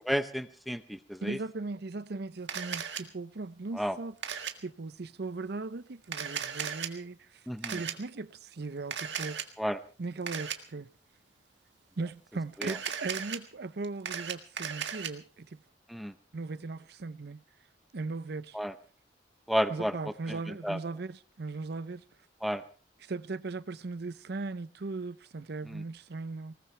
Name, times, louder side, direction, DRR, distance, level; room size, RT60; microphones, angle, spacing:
voice 1, 0.1-1.4 3.7-4.0 7.5-7.8 9.6-9.8 12.6-12.7 15.9-16.1 18.5-18.7 19.5-20.0 20.3-20.4 20.6-20.8 22.4-22.6 25.7-25.8, equal, ahead, 0.8 m, -31 dB
voice 2, 1.2-4.2 4.6-9.4 10.0-10.9 12.0-15.6 16.3-17.4 17.9-18.6 19.7-22.0 23.0-26.5, right 3 dB, 65° right, 0.7 m, -38 dB
Camera, 2.5-3.0 4.2-4.5 6.0-6.9 7.6-7.9 8.9-9.5 10.3-10.6 12.5-13.4 13.8-15.1, right 8 dB, 85° right, 1.7 m, -36 dB
20.5 x 19.5 x 3.3 m
head